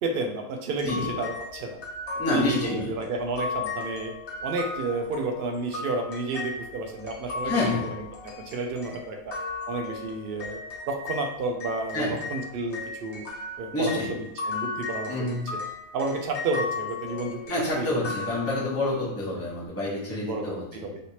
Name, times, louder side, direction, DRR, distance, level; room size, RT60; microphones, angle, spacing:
voice 1, 0.0-1.8 2.3-4.1 4.4-7.5 7.8-9.3 9.7-10.6 10.9-13.3 13.6-14.0 14.4-15.6 15.9-17.4 17.8-18.0 18.5-18.7 19.3-19.4 20.1-21.0, right 3 dB, 80° right, 2 dB, 0.5 m, -31 dB
sound 1, 0.8-11.3 11.6-19.0, left 4 dB, 55° left, 1.1 m, -36 dB
voice 2, 2.2-2.9 7.4-7.8 11.9-12.1 13.7-14.1 15.1-15.4 17.5-20.9, left 2 dB, 15° left, -6 dB, 0.7 m, -28 dB
3.2 x 2.9 x 2.8 m, 0.83 s
omnidirectional pair, 1.5 m